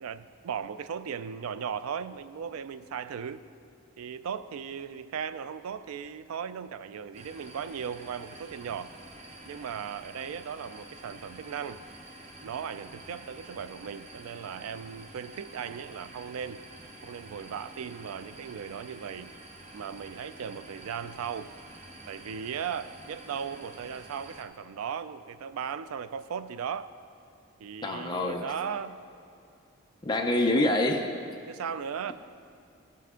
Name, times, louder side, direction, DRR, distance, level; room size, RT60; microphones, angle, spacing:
voice 1, 0.0-3.4 4.0-8.9 9.4-11.8 12.4-16.6 17.0-19.3 19.7-21.5 22.1-26.9 27.6-29.0 31.5-32.1, right 7 dB, 80° right, 13 dB, 0.3 m, -37 dB
sound 1, 7.1-24.4, right 1 dB, 30° right, 0.6 m, -48 dB
voice 2, 27.8-28.5 30.0-31.1, left 1 dB, 20° left, 2 dB, 0.5 m, -26 dB
14.0 x 5.7 x 3.7 m, 2.5 s
head